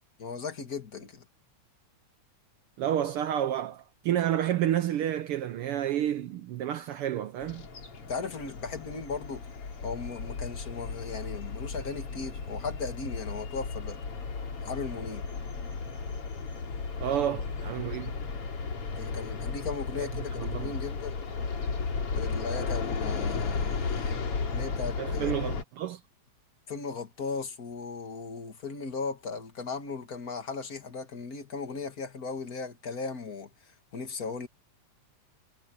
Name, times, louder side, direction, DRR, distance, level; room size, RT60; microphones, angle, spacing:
voice 1, 0.2-1.2 8.0-9.5 9.8-14.0 14.6-15.2 19.0-21.2 22.1-24.2 24.5-25.3 26.7-34.5, left 4 dB, 35° left, 2.0 m, -37 dB
voice 2, 2.8-7.7 17.0-18.1 20.0-20.1 20.4-20.7 25.0-26.0, right 11 dB, 80° right, 1.3 m, -30 dB
sound 1, 7.4-25.6, left 4 dB, 50° left, 3.5 m, -34 dB
omnidirectional pair, 3.4 m